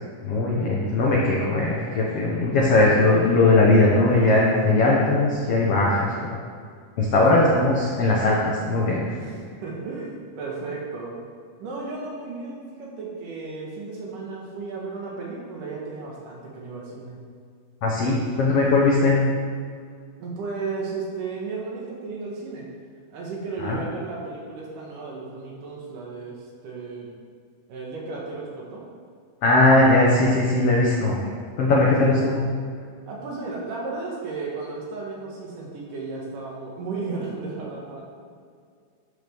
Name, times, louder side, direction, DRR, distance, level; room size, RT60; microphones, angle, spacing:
voice 1, 0.2-6.4 7.0-9.0 17.8-19.2 23.6-23.8 29.4-31.3 31.6-32.4, left 2 dB, 90° left, -4 dB, 1.3 m, -19 dB
voice 2, 9.6-11.1 11.6-17.2 20.2-22.7 23.1-27.1 27.7-28.8 32.0-32.3 33.1-38.0, right 4 dB, 70° right, -3 dB, 2.8 m, -34 dB
12.0 x 5.0 x 3.5 m, 2.1 s
omnidirectional pair, 4.2 m